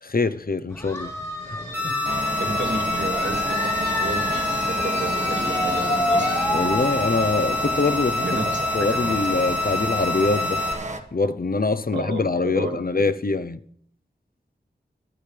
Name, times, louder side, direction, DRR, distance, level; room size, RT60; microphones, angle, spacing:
voice 1, 0.0-1.1 1.5-1.9 6.5-8.2 8.7-10.6 11.1-13.6, left 3 dB, 55° left, 0.8 m, -24 dB
sound 1, 0.7-10.2, left 1 dB, 15° left, 7.0 m, -30 dB
sound 2, 1.7-10.7, left 3 dB, 10° right, 3.6 m, -27 dB
sound 3, 2.0-11.0, right 1 dB, 40° right, 1.6 m, -31 dB
voice 2, 2.4-6.3 8.2-9.2 11.9-12.7, right 2 dB, 75° right, 3.1 m, -32 dB
24.0 x 12.0 x 3.4 m
wide cardioid pair, 70°, 18 cm